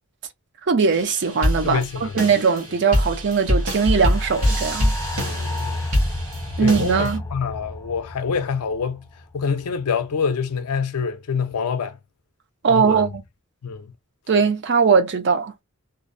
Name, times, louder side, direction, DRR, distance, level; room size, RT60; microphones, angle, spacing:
voice 1, 0.7-4.9 6.6-7.2 12.6-13.2 14.3-15.5, right 5 dB, 50° right, 0.5 m, -20 dB
sound 1, 0.9-7.2, left 1 dB, 70° right, 0.9 m, -24 dB
voice 2, 1.6-2.3 5.2-5.9 6.6-9.0 9.3-12.0 12.7-13.1 13.6-13.9, left 6 dB, 80° left, 0.5 m, -26 dB
sound 2, 3.5-9.9 10.3-10.4, left 1 dB, 15° left, 0.4 m, -32 dB
2.5 x 2.0 x 2.5 m
head